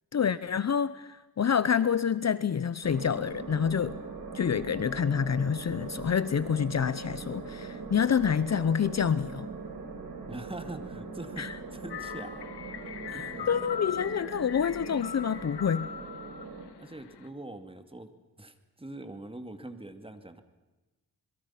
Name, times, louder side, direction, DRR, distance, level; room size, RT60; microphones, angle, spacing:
voice 1, 0.1-4.0 4.3-9.5 11.4-11.5 13.5-15.9, left 7 dB, 40° left, 16 dB, 0.8 m, -27 dB
sound 1, 2.8-16.6, right 4 dB, 60° right, 5.1 m, -41 dB
voice 2, 10.3-12.5 12.9-13.5 16.7-18.1 18.4-20.4, right 2 dB, 15° right, 8 dB, 2.5 m, -43 dB
sound 2, 11.9-17.3, left 8 dB, 85° left, 1.8 m, -41 dB
27.5 x 22.0 x 5.9 m, 1.1 s
cardioid pair, 85°, 39 cm